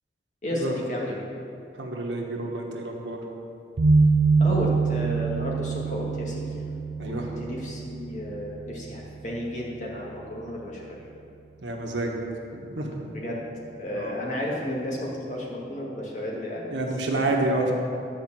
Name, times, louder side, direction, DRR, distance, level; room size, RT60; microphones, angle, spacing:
voice 1, 0.4-1.2 4.4-6.6 7.1-11.0 13.1-13.4 13.8-16.8 17.1-17.3, left 1 dB, 40° left, -3 dB, 1.9 m, -32 dB
voice 2, 1.8-3.2 7.0-7.3 11.6-12.2 12.5-13.0 13.9-14.2 16.7-17.7, right 2 dB, 85° right, 0 dB, 1.5 m, -29 dB
sound 1, 3.8-10.8, right 4 dB, 65° right, 0.5 m, -26 dB
11.5 x 5.0 x 7.7 m, 2.6 s
head